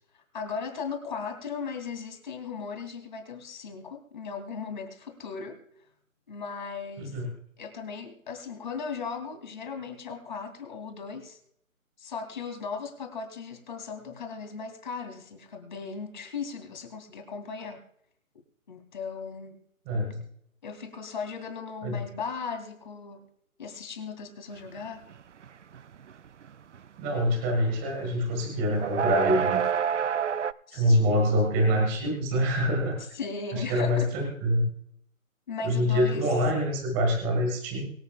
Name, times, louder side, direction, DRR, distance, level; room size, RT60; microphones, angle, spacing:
voice 1, 0.1-5.6 6.3-7.2 7.6-11.4 12.0-17.8 18.7-19.6 20.6-23.3 23.6-25.1 30.7-31.1 33.1-34.1 35.5-36.3, left 5 dB, 35° left, 5 dB, 2.8 m, -37 dB
voice 2, 7.0-7.3 19.9-20.2 21.8-22.0 27.0-29.6 30.7-33.0 33.5-34.6 35.6-37.9, equal, 10° right, 1 dB, 1.6 m, -25 dB
sound 1, 24.8-25.2 25.4-27.9 28.2-30.5, right 8 dB, 60° right, 0.5 m, -28 dB
23.5 x 8.3 x 2.4 m, 0.69 s
hypercardioid pair, 165°, 41 cm